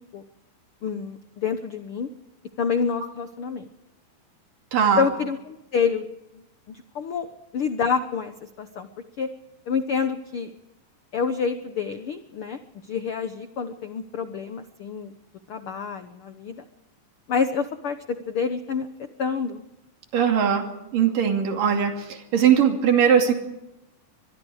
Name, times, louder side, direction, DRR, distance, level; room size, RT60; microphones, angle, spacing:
voice 1, 0.8-2.1 2.6-3.7 5.0-6.1 6.7-7.3 7.5-8.3 8.6-8.9 9.2-9.3 9.7-10.5 11.1-12.6 12.9-15.1 15.5-16.6 17.3-18.9 19.2-19.6, left 6 dB, 85° left, 8 dB, 1.2 m, -27 dB
voice 2, 4.7-5.1 20.1-20.7 20.9-23.3, right 8 dB, 70° right, 4 dB, 4.2 m, -20 dB
24.0 x 22.5 x 4.9 m, 0.90 s
omnidirectional pair, 4.1 m